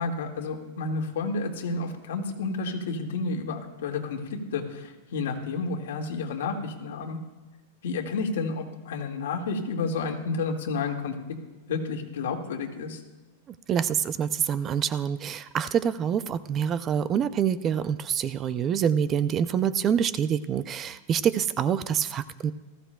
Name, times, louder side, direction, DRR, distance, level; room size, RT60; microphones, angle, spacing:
voice 1, 0.0-7.2 7.8-11.1 11.7-13.0, left 4 dB, 80° left, 2 dB, 1.9 m, -31 dB
voice 2, 13.7-22.5, right 8 dB, 25° right, 14 dB, 0.4 m, -26 dB
19.0 x 15.0 x 2.3 m, 1.2 s
supercardioid pair, 160°, 0 cm